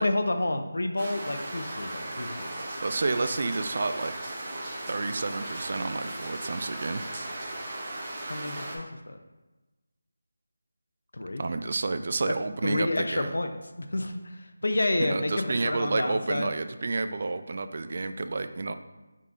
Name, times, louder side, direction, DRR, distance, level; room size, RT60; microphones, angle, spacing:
voice 1, 0.0-2.7 8.3-9.2 11.1-11.4 12.6-13.5 13.8-16.5, left 2 dB, 75° left, 6 dB, 0.5 m, -29 dB
sound 1, 1.0-8.8, right 1 dB, 25° right, 0.8 m, -37 dB
voice 2, 2.8-4.1 4.9-7.0 11.4-13.3 15.0-18.7, right 3 dB, 45° right, 9 dB, 0.3 m, -30 dB
5.6 x 3.7 x 2.5 m, 1.1 s
figure-of-eight pair, 165°, 0 cm